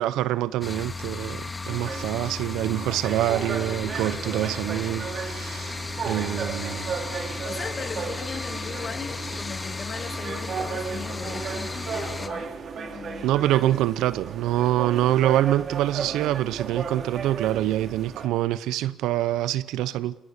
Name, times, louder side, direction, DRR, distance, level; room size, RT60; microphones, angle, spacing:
voice 1, 0.0-6.9 13.2-20.2, right 14 dB, 80° right, 0.8 m, -25 dB
sound 1, 0.6-12.3, left 3 dB, 30° left, 2.3 m, -34 dB
sound 2, 1.7-18.3, right 6 dB, 60° right, 2.9 m, -35 dB
voice 2, 7.4-13.3, left 5 dB, 45° left, 2.1 m, -38 dB
28.0 x 21.0 x 7.2 m
supercardioid pair, 55°, 0 cm